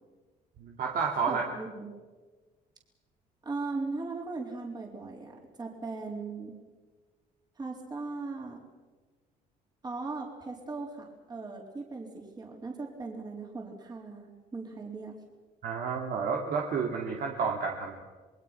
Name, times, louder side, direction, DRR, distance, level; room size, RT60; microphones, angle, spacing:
voice 1, 0.6-1.4 15.6-18.0, right 5 dB, 65° right, 0 dB, 2.7 m, -30 dB
voice 2, 1.3-1.9 3.4-6.5 7.6-8.6 9.8-15.2, right 3 dB, 25° right, 0 dB, 3.9 m, -38 dB
27.0 x 21.5 x 5.8 m, 1.3 s
cardioid pair, 110°, 16 cm